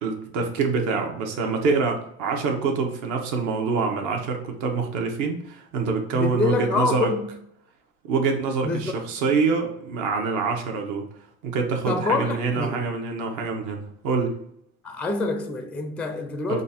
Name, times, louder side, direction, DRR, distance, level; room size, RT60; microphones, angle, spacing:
voice 1, 0.0-7.1 8.1-11.1 11.4-14.4 16.5-16.6, right 4 dB, 60° right, 1.1 m, -25 dB
voice 2, 6.1-7.3 8.6-8.9 11.9-12.9 14.8-16.6, left 3 dB, 5° left, 0.4 m, -26 dB
5.1 x 2.5 x 4.2 m
supercardioid pair, 110°, 34 cm